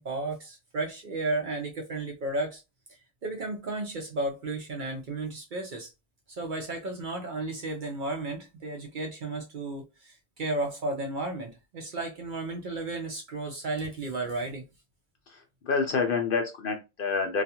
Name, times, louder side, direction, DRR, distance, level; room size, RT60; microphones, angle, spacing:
voice 1, 0.0-2.6 2.9-5.9 6.4-14.6, right 2 dB, 55° right, 0.6 m, -33 dB
voice 2, 15.3-17.4, left 5 dB, 60° left, 0.6 m, -28 dB
2.3 x 2.3 x 2.8 m
omnidirectional pair, 1.2 m